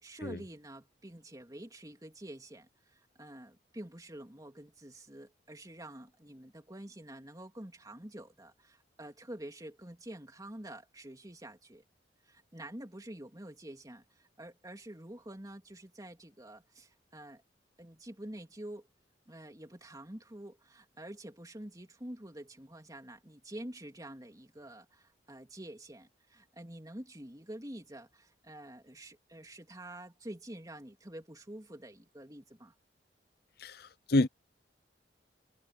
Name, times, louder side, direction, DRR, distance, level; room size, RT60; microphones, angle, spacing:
voice 1, 0.0-11.8 12.3-17.4 17.8-18.9 19.3-32.7, right 1 dB, 20° right, 3.2 m, -47 dB
voice 2, 33.6-34.3, left 2 dB, 60° left, 0.7 m, -29 dB
head